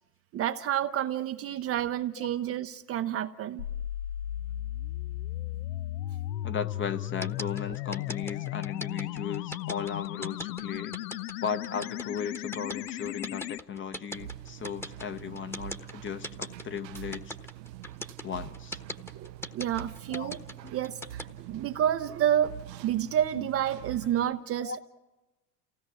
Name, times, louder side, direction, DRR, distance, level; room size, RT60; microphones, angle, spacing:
voice 1, 0.3-3.7 19.1-20.4 20.7-22.6 22.8-24.8, right 10 dB, 30° right, 8 dB, 0.6 m, -29 dB
sound 1, 3.6-13.6, left 13 dB, 75° left, 0.6 m, -36 dB
voice 2, 6.4-10.9 11.4-17.3 18.2-18.8 20.1-20.4 20.6-20.7 23.3-23.4 24.6-24.8, left 7 dB, 25° left, 10 dB, 0.9 m, -36 dB
sound 2, 7.2-21.2, left 1 dB, 5° left, 1.1 m, -39 dB
sound 3, 14.1-24.3, right 13 dB, 80° right, 0.7 m, -45 dB
29.0 x 17.0 x 6.1 m, 1.1 s
hypercardioid pair, 85°, 50 cm